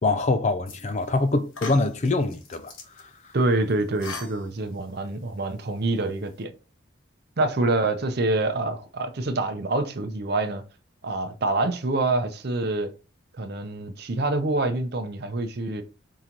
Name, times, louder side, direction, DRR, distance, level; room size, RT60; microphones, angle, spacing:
voice 1, 0.0-3.1, left 2 dB, 35° left, 0.4 m, -24 dB
sound 1, 0.7-1.1 1.5-3.0 3.7-4.9, left 4 dB, 80° left, 1.2 m, -40 dB
voice 2, 3.3-6.5 7.4-10.6 11.0-12.9 13.4-15.8, right 2 dB, 50° right, 0.6 m, -26 dB
4.7 x 2.9 x 3.8 m
head